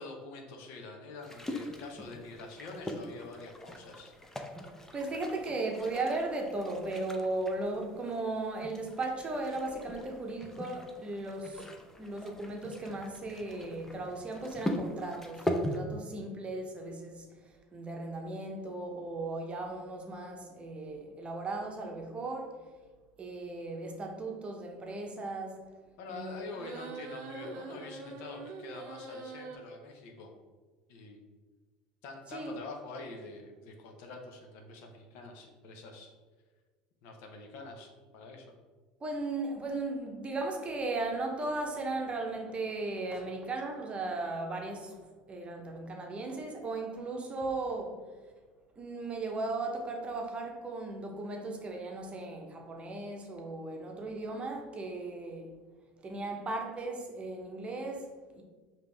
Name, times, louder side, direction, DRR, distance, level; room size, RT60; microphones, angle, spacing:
voice 1, 0.0-4.1 26.0-30.3 30.9-31.2 32.0-36.1 37.0-38.5, left 3 dB, 65° left, 2 dB, 0.8 m, -46 dB
sound 1, 1.2-15.8, left 1 dB, 10° left, 0.6 m, -41 dB
voice 2, 4.9-11.7 12.0-22.6 23.2-25.6 26.1-26.4 32.3-32.5 39.0-45.0 45.3-48.0 48.8-55.5 56.0-58.4, right 2 dB, 30° right, 2 dB, 0.9 m, -36 dB
sound 2, 26.5-29.6, right 3 dB, 60° right, 0.6 m, -43 dB
5.1 x 2.9 x 3.4 m, 1.4 s
hypercardioid pair, 80°, 4 cm